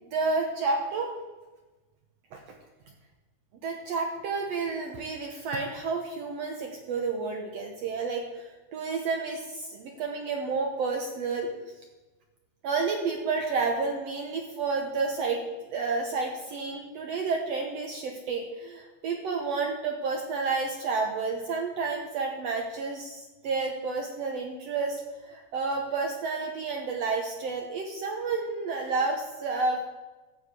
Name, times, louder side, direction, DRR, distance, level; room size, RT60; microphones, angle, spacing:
voice 1, 0.0-1.1 2.3-2.4 3.6-11.5 12.6-29.8, right 4 dB, 70° right, 2 dB, 1.8 m, -30 dB
13.0 x 4.8 x 8.1 m, 1.2 s
omnidirectional pair, 3.4 m